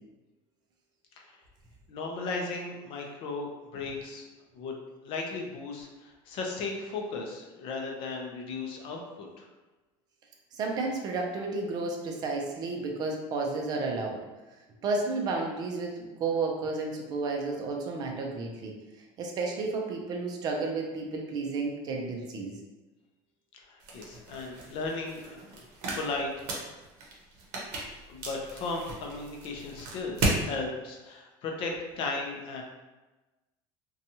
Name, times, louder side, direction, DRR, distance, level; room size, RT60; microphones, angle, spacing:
voice 1, 1.9-4.2 4.5-4.8 5.0-9.5 23.5-25.6 25.9-26.5 28.1-32.6, left 3 dB, 45° left, 1 dB, 0.5 m, -36 dB
voice 2, 10.5-14.2 14.8-18.7 19.2-22.6, right 3 dB, 30° right, 0 dB, 0.4 m, -32 dB
sound 1, 23.8-30.4, right 2 dB, 70° right, 0.7 m, -35 dB
2.7 x 2.3 x 2.8 m, 1.1 s
cardioid pair, 170°, 13 cm